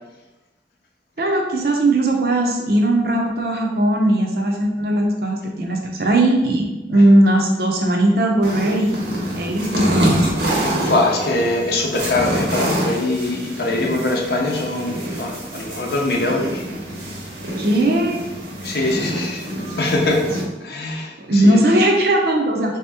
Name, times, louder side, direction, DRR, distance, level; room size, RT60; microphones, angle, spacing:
voice 1, 1.2-9.0 9.4-10.2 17.6-18.2 21.2-22.8, right 1 dB, 60° right, 1 dB, 0.6 m, -18 dB
sound 1, 8.4-20.4, right 1 dB, 85° right, 1.0 m, -26 dB
voice 2, 10.8-16.6 18.6-19.4 19.8-20.2 20.6-21.6, left 2 dB, 65° left, 0 dB, 0.6 m, -22 dB
3.3 x 2.9 x 3.4 m, 1.1 s
head